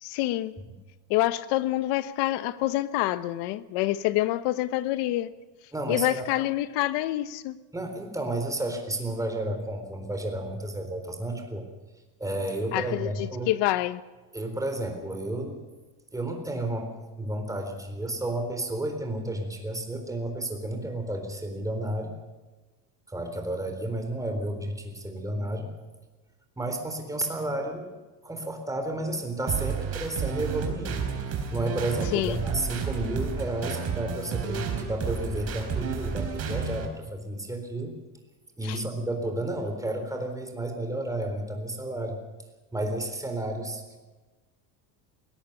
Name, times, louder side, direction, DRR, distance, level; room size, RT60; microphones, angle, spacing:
voice 1, 0.0-0.5 1.1-5.3 5.9-7.6 12.7-14.0 32.1-32.5 38.6-38.8, left 15 dB, 70° left, 1.1 m, -27 dB
voice 2, 5.7-6.3 7.7-11.7 12.2-13.5 14.3-15.6 16.1-16.9 17.2-22.1 23.1-25.7 26.6-28.0 28.2-31.1 31.5-37.9 38.6-42.2 42.7-44.0, right 1 dB, 10° right, 3.9 m, -31 dB
sound 1, 29.5-36.9, right 6 dB, 35° right, 4.2 m, -31 dB
21.0 x 18.5 x 6.8 m
cardioid pair, 135°, 42 cm